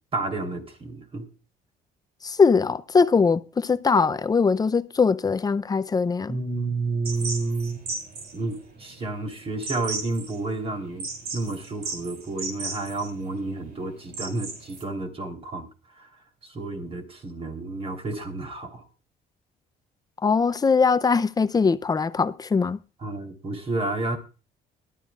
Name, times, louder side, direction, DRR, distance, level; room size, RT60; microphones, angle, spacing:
voice 1, 0.1-1.3 6.3-7.8 8.3-11.1 11.3-15.7 16.0-16.1 16.4-18.8 23.0-24.2, right 2 dB, 35° right, 3.4 m, -30 dB
voice 2, 2.2-6.4 20.2-22.8, left 5 dB, 20° left, 0.5 m, -21 dB
sound 1, 7.0-14.8, right 3 dB, 65° right, 3.4 m, -36 dB
19.5 x 12.5 x 2.4 m
cardioid pair, 110°, 17 cm